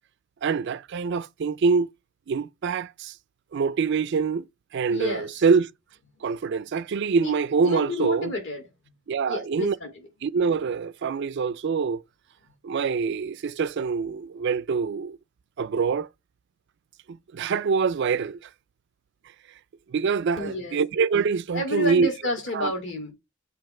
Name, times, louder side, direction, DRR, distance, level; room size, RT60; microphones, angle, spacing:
voice 1, 0.4-1.9 2.3-3.1 3.5-4.4 4.7-5.7 6.2-8.3 9.1-9.8 10.2-12.0 12.6-15.2 15.6-16.1 17.1-18.4 19.9-22.1 22.5-22.7, right 5 dB, 50° right, 0.3 m, -25 dB
voice 2, 4.9-5.3 7.2-7.3 7.6-8.6 9.3-9.9 20.4-20.8 21.5-23.1, left 2 dB, 55° left, 2.0 m, -30 dB
7.7 x 2.9 x 4.3 m
head